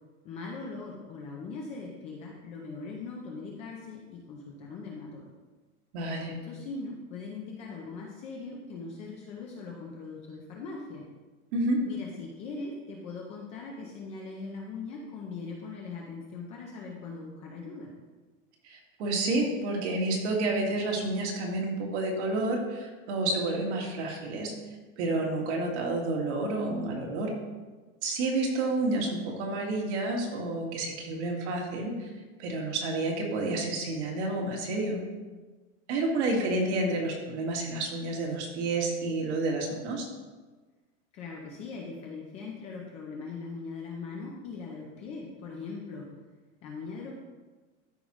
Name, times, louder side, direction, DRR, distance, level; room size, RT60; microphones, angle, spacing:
voice 1, 0.2-5.3 6.1-11.0 11.9-17.9 41.1-46.1 46.6-47.2, left 4 dB, 20° left, -1 dB, 0.4 m, -40 dB
voice 2, 5.9-6.3 11.5-11.8 18.6-24.5 25.0-27.3 28.0-32.1 32.4-35.0 35.9-40.1, right 2 dB, 60° right, 0 dB, 1.8 m, -30 dB
12.5 x 4.9 x 3.0 m, 1.3 s
supercardioid pair, 175°, 38 cm